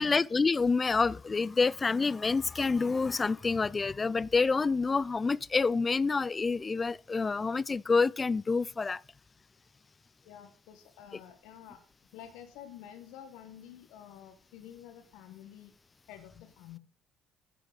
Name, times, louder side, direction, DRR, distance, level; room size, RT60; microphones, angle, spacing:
voice 1, 0.0-9.0, left 4 dB, 30° left, 0.4 m, -27 dB
voice 2, 10.2-11.8 12.1-15.7 16.1-16.8, left 10 dB, 70° left, 1.1 m, -49 dB
10.5 x 8.3 x 3.8 m
hypercardioid pair, 55°, 0 cm